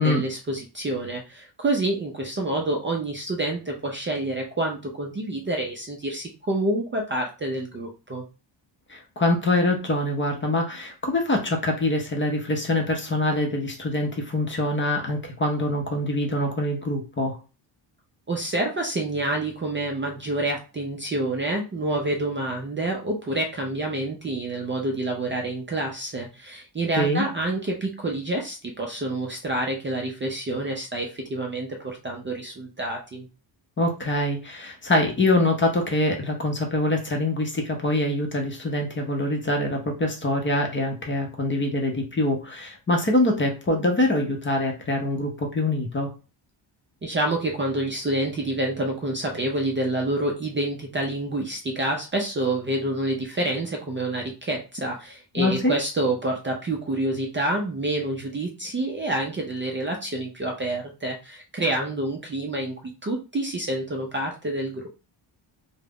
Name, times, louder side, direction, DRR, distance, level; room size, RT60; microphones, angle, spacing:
voice 1, 0.0-8.2 18.3-33.3 47.0-62.8 63.0-64.8, right 1 dB, 25° right, 0 dB, 0.4 m, -28 dB
voice 2, 8.9-17.4 27.0-27.2 33.8-46.1 55.4-55.7, left 1 dB, 25° left, 2 dB, 0.6 m, -24 dB
2.4 x 2.0 x 3.4 m, 0.32 s
cardioid pair, 115°, 47 cm